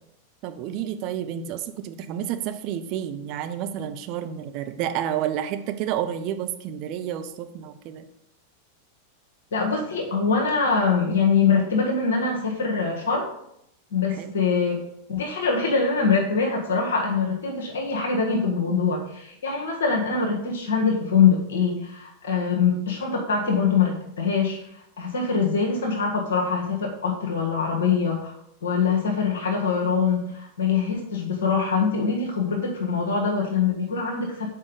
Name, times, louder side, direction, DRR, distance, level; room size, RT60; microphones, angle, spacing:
voice 1, 0.4-8.0 14.2-14.4, right 10 dB, 40° right, 8 dB, 0.7 m, -30 dB
voice 2, 9.5-13.3 13.9-14.8 15.1-28.3 28.6-34.5, left 5 dB, 60° left, 0 dB, 1.6 m, -23 dB
7.4 x 4.8 x 5.2 m, 0.76 s
figure-of-eight pair, 90°, 0 cm